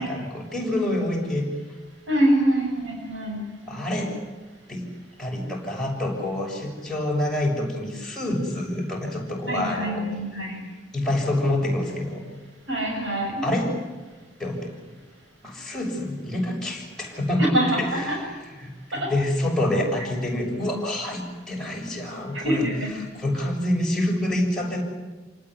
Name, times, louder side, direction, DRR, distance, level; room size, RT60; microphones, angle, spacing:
voice 1, 0.0-1.5 3.7-4.1 4.7-4.8 5.2-10.0 10.9-12.2 13.4-13.8 14.4-14.7 15.4-24.8, left 1 dB, ahead, -3 dB, 7.0 m, -27 dB
voice 2, 2.1-3.4 9.5-10.6 12.7-13.4 17.5-17.7 17.9-18.2 18.9-19.1 22.3-22.9, right 1 dB, 85° right, 0 dB, 6.9 m, -24 dB
28.0 x 19.0 x 9.9 m, 1.2 s
head